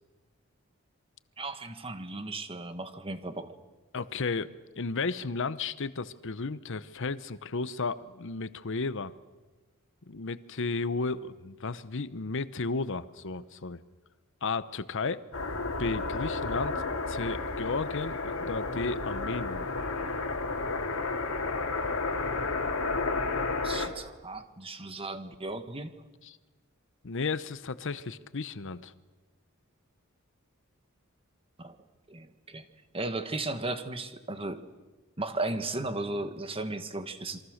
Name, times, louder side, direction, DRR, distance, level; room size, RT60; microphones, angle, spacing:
voice 1, 1.4-3.5 23.6-26.0 31.6-31.8 32.1-32.6 32.9-34.6 35.2-37.4, right 2 dB, 25° right, 9 dB, 1.5 m, -35 dB
voice 2, 3.9-4.5 4.8-9.1 10.1-13.8 14.4-15.2 15.8-16.7 17.1-19.7 26.2-26.4 27.0-28.9, left 4 dB, 65° left, 15 dB, 0.8 m, -33 dB
sound 1, 15.3-23.9, left 3 dB, 85° left, 2.6 m, -32 dB
27.5 x 23.5 x 6.5 m, 1.2 s
head